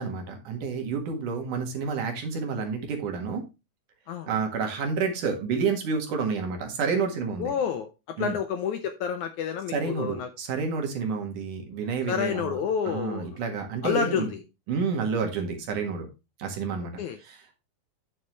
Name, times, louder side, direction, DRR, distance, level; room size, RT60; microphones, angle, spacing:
voice 1, 0.0-3.4 4.3-7.5 8.2-8.4 9.7-12.6 12.8-14.3 14.7-16.1 16.4-16.9 17.2-17.5, right 5 dB, 65° right, 4 dB, 3.1 m, -29 dB
voice 2, 7.4-7.9 8.2-10.3 12.1-13.3 13.8-14.4 17.0-17.2, left 8 dB, 75° left, 7 dB, 1.9 m, -29 dB
9.8 x 6.7 x 3.1 m, 0.26 s
omnidirectional pair, 4.2 m